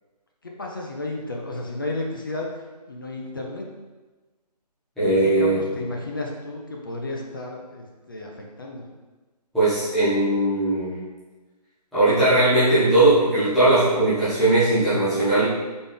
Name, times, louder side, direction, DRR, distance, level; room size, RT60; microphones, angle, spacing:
voice 1, 0.4-2.5 2.9-3.7 5.1-8.8, left 2 dB, 30° left, 0 dB, 0.4 m, -33 dB
voice 2, 5.0-5.6 9.5-11.0 11.9-15.4, right 2 dB, ahead, -16 dB, 0.8 m, -19 dB
4.2 x 3.4 x 3.4 m, 1.2 s
figure-of-eight pair, 165°, 21 cm